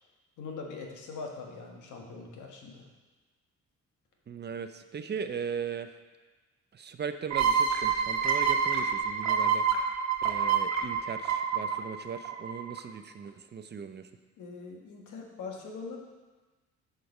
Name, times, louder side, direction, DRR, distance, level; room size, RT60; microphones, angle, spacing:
voice 1, 0.4-2.8 14.4-16.0, left 4 dB, 80° left, 1 dB, 1.5 m, -42 dB
voice 2, 4.3-5.9 6.7-9.7 10.2-14.1, right 6 dB, 35° right, 9 dB, 0.5 m, -38 dB
sound 1, 7.3-12.8, right 6 dB, 60° right, 1.2 m, -27 dB
7.7 x 5.2 x 5.3 m, 1.3 s
cardioid pair, 90°, 30 cm